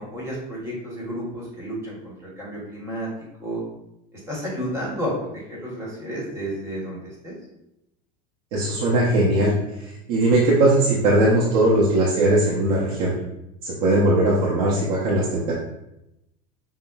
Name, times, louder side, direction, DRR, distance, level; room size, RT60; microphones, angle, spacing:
voice 1, 0.0-3.1 3.4-3.6 4.1-7.3, equal, 15° right, -5 dB, 1.1 m, -31 dB
voice 2, 8.5-9.5 10.1-13.1 13.6-15.5, right 1 dB, 75° right, -4 dB, 0.7 m, -19 dB
5.5 x 2.0 x 2.3 m, 0.87 s
supercardioid pair, 150°, 20 cm